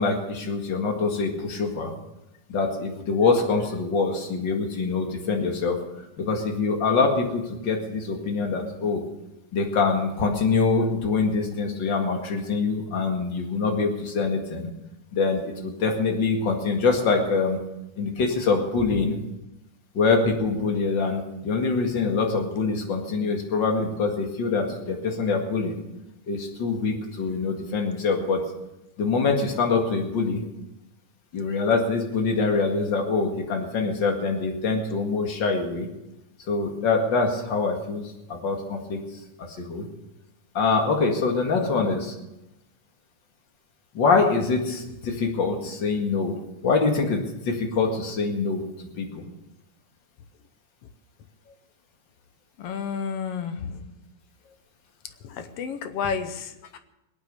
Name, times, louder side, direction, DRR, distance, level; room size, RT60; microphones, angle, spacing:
voice 1, 0.0-1.9 2.5-5.8 6.2-9.0 9.5-14.7 15.1-17.6 18.0-19.1 19.9-25.8 26.3-28.4 29.0-30.4 31.3-35.9 36.5-38.0 38.3-39.0 39.6-39.9 40.5-42.1 43.9-46.3 46.6-48.6 49.0-49.2 53.6-53.9, left 4 dB, 40° left, 2 dB, 2.4 m, -24 dB
voice 2, 52.6-53.8 55.2-56.8, left 6 dB, 65° left, 9 dB, 1.6 m, -31 dB
21.0 x 9.1 x 6.7 m, 0.94 s
omnidirectional pair, 3.4 m